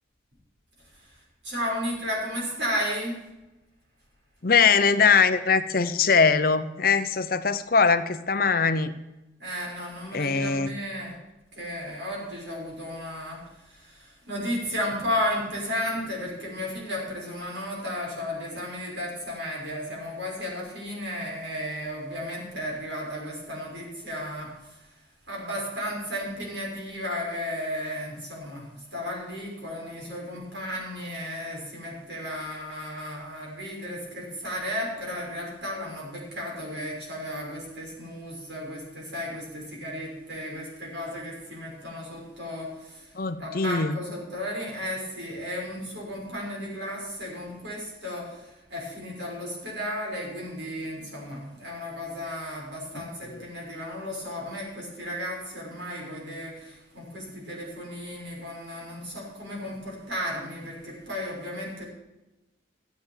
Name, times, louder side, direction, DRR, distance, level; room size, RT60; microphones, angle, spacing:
voice 1, 1.4-3.2 9.4-11.1 11.5-25.0 25.3-43.1 43.4-61.8, equal, 70° right, -3 dB, 6.0 m, -34 dB
voice 2, 4.4-8.9 10.1-10.7 43.1-44.0 53.3-53.4, left 5 dB, 50° left, 11 dB, 0.7 m, -22 dB
13.5 x 8.1 x 7.3 m, 1.0 s
head